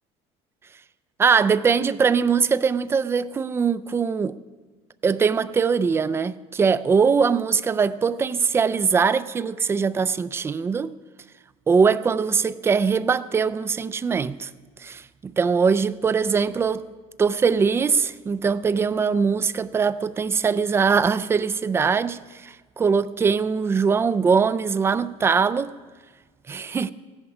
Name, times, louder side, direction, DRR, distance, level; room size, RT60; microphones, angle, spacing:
voice 1, 1.2-4.4 5.0-11.0 11.7-14.5 14.8-16.9 17.2-25.7 26.5-26.9, right 5 dB, 15° right, 0.3 m, -22 dB
15.5 x 10.5 x 4.9 m
cardioid pair, 135°, 15 cm